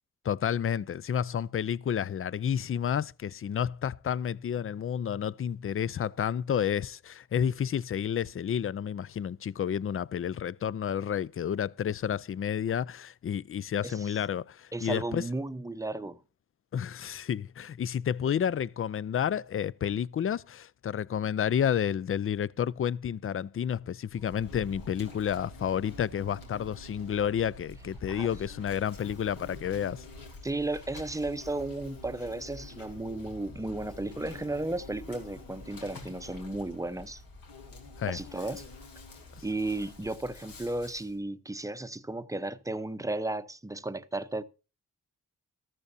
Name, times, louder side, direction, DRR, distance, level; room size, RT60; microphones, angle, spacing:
voice 1, 0.2-15.3 16.7-30.0 38.0-38.2 39.4-39.5, left 8 dB, 40° left, 0.5 m, -30 dB
voice 2, 13.8-14.2 14.7-16.2 28.1-28.3 30.4-37.2 38.0-38.6 39.4-44.4, right 2 dB, 10° right, 0.7 m, -34 dB
Insect, 24.1-41.1, left 2 dB, 85° left, 3.4 m, -47 dB
14.0 x 13.5 x 2.7 m
cardioid pair, 70°, 34 cm